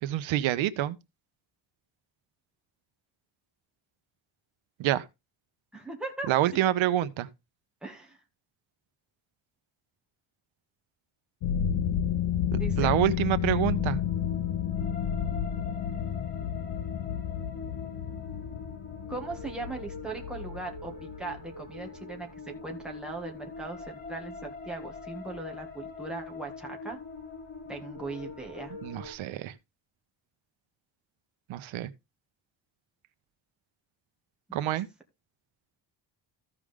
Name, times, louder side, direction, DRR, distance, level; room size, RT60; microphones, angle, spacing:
voice 1, 0.0-1.0 4.8-5.1 6.3-7.3 12.5-14.0 28.8-29.5 31.5-31.9 34.5-34.9, right 12 dB, 85° right, 0.9 m, -27 dB
voice 2, 5.7-6.6 7.8-8.2 12.6-12.9 19.1-27.0 27.7-28.7 34.5-34.7, right 3 dB, ahead, 1.8 m, -39 dB
sound 1, 11.4-21.5, left 9 dB, 60° left, 0.9 m, -31 dB
sound 2, 13.6-29.1, left 4 dB, 20° left, 4.1 m, -43 dB
14.5 x 5.0 x 3.6 m
cardioid pair, 165°, 45 cm